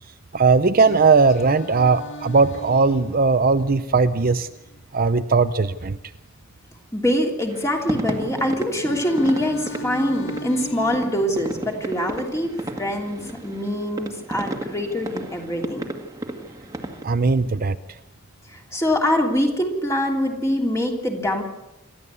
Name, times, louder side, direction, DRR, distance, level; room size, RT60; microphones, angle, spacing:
voice 1, 0.3-4.5 4.9-6.0 17.0-17.8, right 4 dB, 45° right, 10 dB, 0.6 m, -18 dB
Singing, 0.8-4.8 8.7-12.8, equal, 60° left, 1.9 m, -37 dB
voice 2, 6.9-12.5 12.8-15.8 18.5-21.4, equal, 15° left, 1 dB, 3.1 m, -24 dB
sound 1, 7.5-17.0, right 1 dB, 15° right, 1.9 m, -33 dB
27.5 x 13.0 x 8.4 m, 0.98 s
head